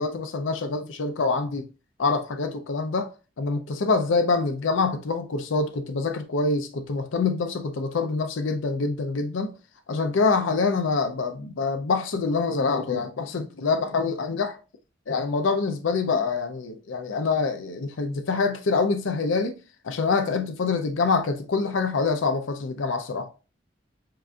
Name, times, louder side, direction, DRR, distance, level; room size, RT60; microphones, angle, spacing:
voice 1, 0.0-1.7 2.0-9.5 9.9-14.6 15.1-19.6 19.8-23.3, left 4 dB, 70° left, 0.5 m, -25 dB
7.5 x 2.5 x 2.3 m
head